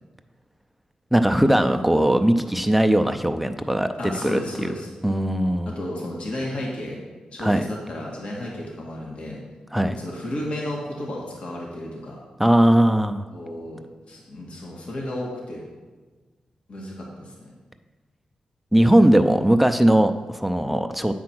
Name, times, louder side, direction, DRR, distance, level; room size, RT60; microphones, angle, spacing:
voice 1, 1.1-4.7 5.0-5.8 7.4-7.6 9.7-9.9 12.4-13.2 18.7-21.1, right 1 dB, 5° right, 7 dB, 0.4 m, -19 dB
voice 2, 4.0-4.9 5.7-7.0 7.3-9.4 9.9-12.2 13.3-15.6 16.7-17.5, left 1 dB, 60° left, -3 dB, 1.8 m, -33 dB
8.5 x 4.7 x 6.1 m, 1.3 s
cardioid pair, 95°, 2 cm